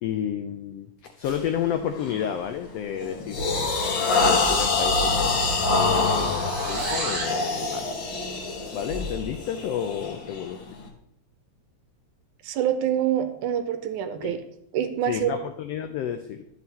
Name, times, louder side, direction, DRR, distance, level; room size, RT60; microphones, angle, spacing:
voice 1, 0.0-3.5 3.8-5.3 5.7-7.9 8.7-10.6 14.2-14.4 15.1-16.4, left 9 dB, 90° left, 7 dB, 1.4 m, -31 dB
sound 1, 1.2-1.5 2.0-2.3 2.7-10.8, left 3 dB, 55° left, 1.5 m, -25 dB
sound 2, 4.9-7.4, right 2 dB, 40° right, 3.2 m, -34 dB
voice 2, 12.4-14.4 14.7-15.4, right 10 dB, 85° right, 8 dB, 2.3 m, -26 dB
10.5 x 6.3 x 4.1 m, 0.75 s
omnidirectional pair, 3.5 m